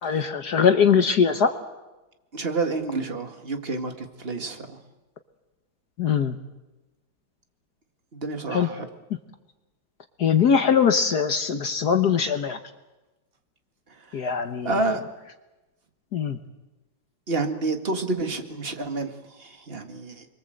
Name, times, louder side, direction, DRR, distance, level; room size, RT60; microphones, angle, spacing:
voice 1, 0.0-1.5 6.0-6.4 8.5-8.7 10.2-12.6 14.1-14.7 16.1-16.4, left 7 dB, 55° left, 7 dB, 1.6 m, -21 dB
voice 2, 2.3-4.8 8.1-8.9 13.9-15.0 17.3-20.3, right 3 dB, 30° right, 6 dB, 2.0 m, -29 dB
29.5 x 23.0 x 7.9 m, 1.1 s
omnidirectional pair, 2.2 m